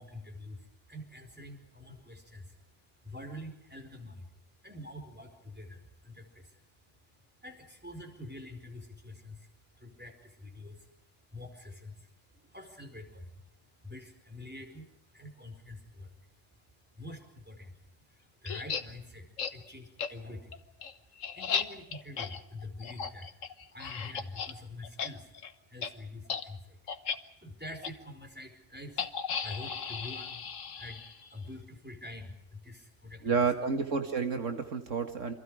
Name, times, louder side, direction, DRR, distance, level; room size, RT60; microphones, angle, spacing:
voice 1, 0.0-33.3, left 2 dB, 10° right, 4 dB, 4.6 m, -47 dB
sound 1, 18.4-18.8 19.4-19.5 20.0-20.1 20.5-24.5 24.8-25.1 25.3-25.5 25.8-25.9 26.3-26.4 26.9-27.2 27.8-27.9 29.0-31.3, left 6 dB, 80° left, 1.6 m, -35 dB
voice 2, 33.2-35.3, right 5 dB, 75° right, 6 dB, 2.2 m, -30 dB
28.5 x 25.5 x 5.0 m, 0.80 s
omnidirectional pair, 1.3 m